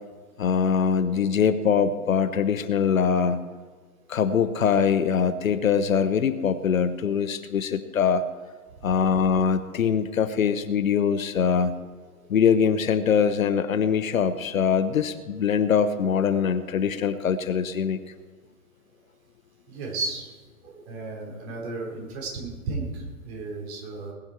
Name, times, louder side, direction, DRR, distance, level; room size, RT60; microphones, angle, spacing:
voice 1, 0.4-3.4 4.1-8.2 8.8-11.8 12.3-18.0, left 7 dB, 60° left, 12 dB, 1.0 m, -23 dB
voice 2, 19.7-20.3 20.6-24.1, right 3 dB, 40° right, -1 dB, 4.5 m, -34 dB
20.5 x 10.0 x 4.5 m, 1.5 s
figure-of-eight pair, 115°, 45 cm